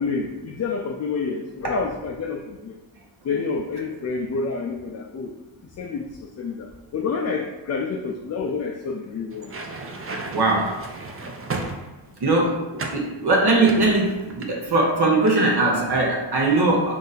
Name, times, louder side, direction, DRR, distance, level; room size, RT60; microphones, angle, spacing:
voice 1, 0.0-2.8 3.2-5.3 5.8-9.5, left 4 dB, 35° left, 2 dB, 0.4 m, -28 dB
sound 1, 9.3-12.2 12.8-13.1 13.6-14.8 15.1-15.4, right 3 dB, 30° right, 0.5 m, -34 dB
voice 2, 10.3-10.7 12.2-16.9, right 2 dB, 55° right, -2 dB, 0.9 m, -20 dB
3.9 x 2.5 x 4.0 m, 1.1 s
cardioid pair, 60°, 46 cm